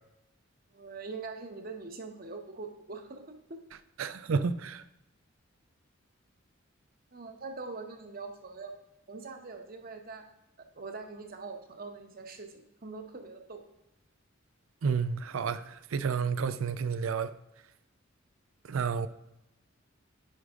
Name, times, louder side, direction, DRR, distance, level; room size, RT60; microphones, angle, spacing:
voice 1, 0.7-3.4 7.1-8.7 9.1-10.3 10.7-13.6 18.9-19.0, right 4 dB, 45° right, 1.0 m, -43 dB
voice 2, 4.0-4.8 14.8-17.3 18.7-19.1, right 5 dB, 80° right, 0.5 m, -30 dB
10.0 x 4.8 x 3.6 m
head